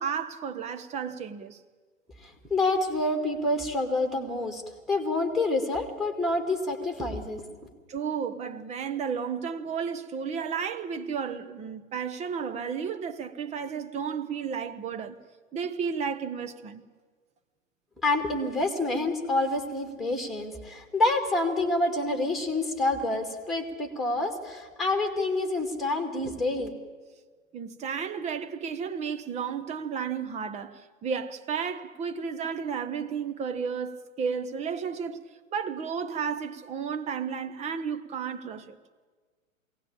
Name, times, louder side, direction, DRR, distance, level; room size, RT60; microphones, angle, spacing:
voice 1, 0.0-1.6 7.9-15.2 15.5-16.8 27.5-35.2 35.5-38.8, right 6 dB, 15° right, 0.9 m, -33 dB
voice 2, 2.2-4.6 4.9-7.4 18.0-26.7, left 2 dB, ahead, 2.2 m, -27 dB
22.0 x 17.5 x 8.7 m
figure-of-eight pair, 115°, 41 cm